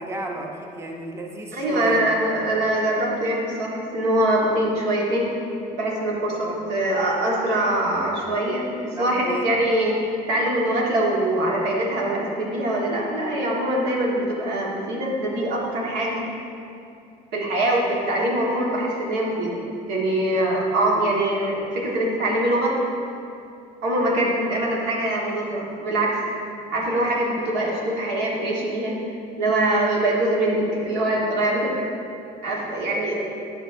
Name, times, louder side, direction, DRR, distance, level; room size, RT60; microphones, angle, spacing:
voice 1, 0.0-2.1 6.4-6.6 9.0-9.5 24.2-24.4, right 1 dB, 15° right, 1 dB, 0.6 m, -33 dB
voice 2, 1.5-5.3 5.7-9.9 10.3-16.2 17.3-19.6 19.9-22.7 23.8-26.2 26.7-28.9 29.4-31.9 32.4-33.3, right 1 dB, 80° right, -3 dB, 1.4 m, -23 dB
11.0 x 5.3 x 2.5 m, 2.6 s
cardioid pair, 110°, 17 cm